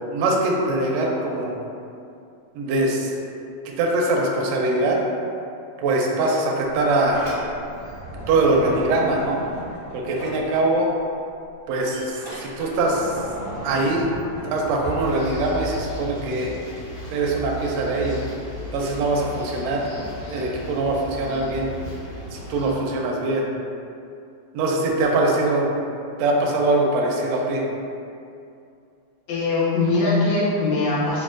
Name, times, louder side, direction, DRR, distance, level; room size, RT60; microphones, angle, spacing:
voice 1, 0.1-1.5 2.5-3.1 3.8-5.0 5.8-7.2 8.3-9.4 9.9-10.9 11.7-13.2 13.6-14.1 14.4-16.6 17.1-18.2 18.7-19.8 20.3-21.7 22.3-23.5 24.5-25.8 26.2-27.6, right 2 dB, 80° right, -1 dB, 1.5 m, -22 dB
Sliding door, 6.8-11.0 11.3-16.0, equal, 45° left, 0.8 m, -36 dB
sound 1, 14.9-22.7, left 1 dB, 65° left, 1.6 m, -35 dB
voice 2, 29.3-31.2, left 3 dB, 80° left, -6 dB, 1.8 m, -21 dB
5.7 x 2.1 x 2.4 m, 2.5 s
omnidirectional pair, 3.3 m